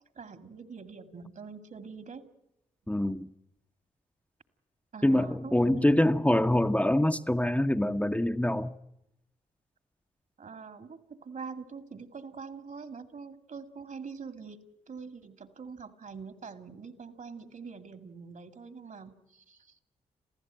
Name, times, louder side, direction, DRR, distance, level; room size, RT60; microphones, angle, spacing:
voice 1, 0.1-2.3 4.9-6.0 10.4-19.8, right 5 dB, 55° right, 10 dB, 2.3 m, -44 dB
voice 2, 2.9-3.3 5.0-8.7, left 1 dB, 10° left, 6 dB, 1.0 m, -25 dB
27.5 x 15.5 x 9.1 m, 0.84 s
supercardioid pair, 45°, 16 cm